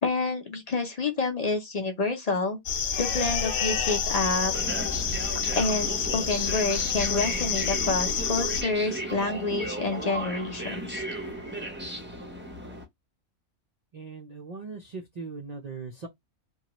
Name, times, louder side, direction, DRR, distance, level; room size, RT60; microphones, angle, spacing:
voice 1, 0.0-2.6 3.0-4.5 5.5-11.0, left 3 dB, 45° left, 0.5 m, -28 dB
sound 1, 2.7-8.6, left 6 dB, 65° left, 0.9 m, -28 dB
sound 2, 4.2-12.8, right 1 dB, 10° right, 0.5 m, -35 dB
voice 2, 13.9-16.1, right 4 dB, 65° right, 0.4 m, -39 dB
3.0 x 2.2 x 2.8 m
omnidirectional pair, 1.3 m